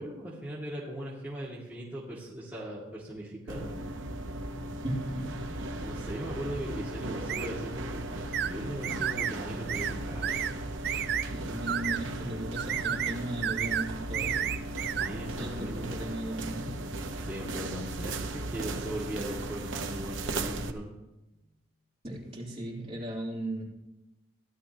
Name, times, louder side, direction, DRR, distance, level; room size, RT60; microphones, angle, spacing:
voice 1, 0.0-3.8 5.8-10.3 14.9-15.9 17.2-20.9, right 1 dB, 10° right, -9 dB, 2.2 m, -39 dB
sound 1, 3.5-20.7, right 2 dB, 70° right, 0.8 m, -37 dB
voice 2, 4.8-5.6 11.3-14.6 15.3-16.9 22.0-23.6, right 1 dB, 30° right, -5 dB, 3.4 m, -37 dB
sound 2, 7.3-7.5 8.3-8.5 8.8-9.3 9.7-9.9 10.2-10.5 10.8-11.3 11.7-12.0 12.6-13.2 13.4-13.9 14.1-15.1, right 9 dB, 50° right, 0.5 m, -31 dB
16.5 x 12.0 x 3.0 m, 0.98 s
head